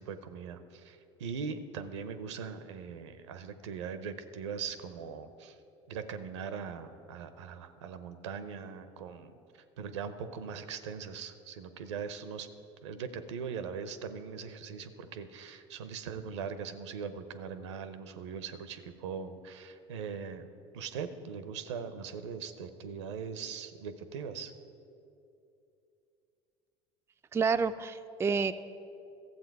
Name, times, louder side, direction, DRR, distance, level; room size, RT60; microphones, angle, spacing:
voice 1, 0.0-5.6 5.9-9.3 9.8-12.5 12.8-20.5 20.7-24.5, right 6 dB, 80° right, 11 dB, 0.7 m, -40 dB
voice 2, 27.3-28.5, right 5 dB, 15° right, 9 dB, 0.4 m, -29 dB
13.5 x 7.5 x 4.6 m, 2.7 s
hypercardioid pair, 75°, 15 cm